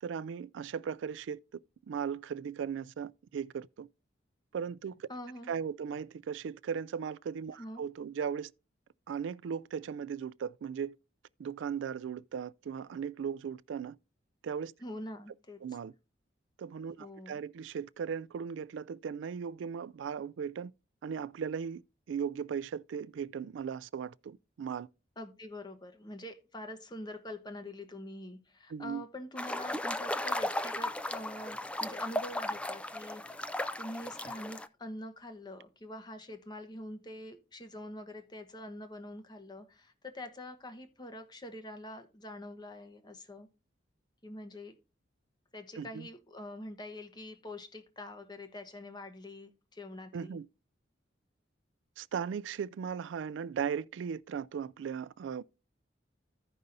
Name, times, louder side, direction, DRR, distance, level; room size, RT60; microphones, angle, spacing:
voice 1, 0.0-1.4 1.9-3.9 4.5-5.1 5.5-8.5 9.1-11.0 11.4-14.0 14.4-14.7 15.6-15.9 16.6-20.7 21.0-21.8 22.1-24.9 28.7-29.0 45.8-46.1 50.1-50.5 52.0-55.4, right 7 dB, 70° right, 0.3 m, -37 dB
voice 2, 5.1-5.5 7.6-7.9 14.8-15.6 17.0-17.4 25.2-33.4 33.8-43.5 44.2-44.8 45.5-50.4, left 1 dB, 25° left, 0.9 m, -45 dB
sound 1, 29.4-34.7, left 1 dB, 5° left, 0.3 m, -36 dB
15.0 x 5.4 x 2.6 m
head